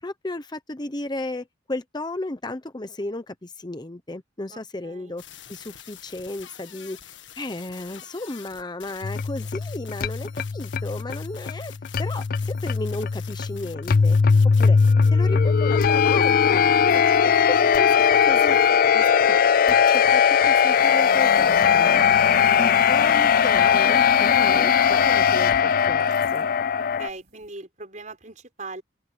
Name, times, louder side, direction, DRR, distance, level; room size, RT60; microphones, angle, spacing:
voice 1, 0.0-5.2 5.5-7.0 7.4-11.7 12.0-14.2 14.4-14.8 15.1-18.6 18.9-22.0 22.6-26.5, left 2 dB, 25° left, 0.8 m, -34 dB
voice 2, 4.5-5.2 22.2-23.4 26.7-28.8, right 3 dB, 40° right, 5.6 m, -41 dB
sound 1, 5.2-15.1, left 10 dB, 85° left, 1.7 m, -46 dB
sound 2, 9.0-27.1, left 7 dB, 50° left, 0.4 m, -19 dB
sound 3, 15.2-27.5, right 5 dB, 65° right, 6.3 m, -57 dB
open air
head